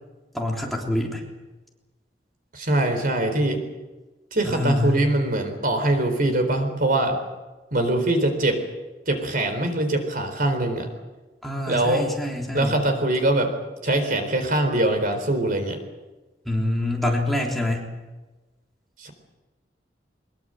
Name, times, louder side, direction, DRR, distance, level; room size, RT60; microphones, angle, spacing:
voice 1, 0.3-1.2 4.4-5.0 11.4-12.8 16.5-17.9, left 1 dB, ahead, -1 dB, 3.5 m, -26 dB
voice 2, 2.5-3.6 4.3-7.2 7.7-8.6 9.1-10.9 11.7-12.1 12.5-15.8 19.0-19.1, right 1 dB, 55° right, 7 dB, 4.0 m, -23 dB
22.5 x 22.0 x 7.9 m, 1.2 s
head